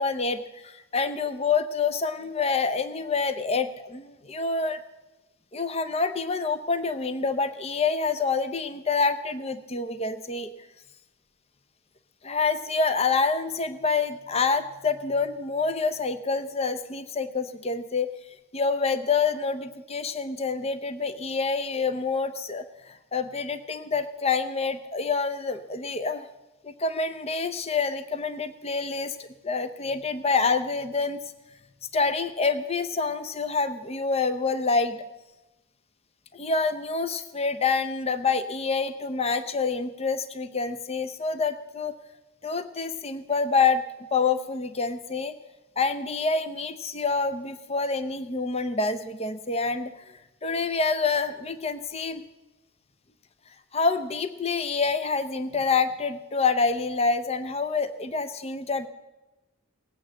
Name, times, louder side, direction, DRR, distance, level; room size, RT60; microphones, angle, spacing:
voice 1, 0.0-4.8 5.5-10.5 12.2-18.1 18.5-26.3 26.6-31.2 31.9-35.0 36.3-41.9 42.4-43.8 44.1-45.3 45.8-49.9 50.4-52.2 53.7-58.9, left 4 dB, 25° left, 12 dB, 0.6 m, -27 dB
18.0 x 8.5 x 7.5 m, 1.0 s
head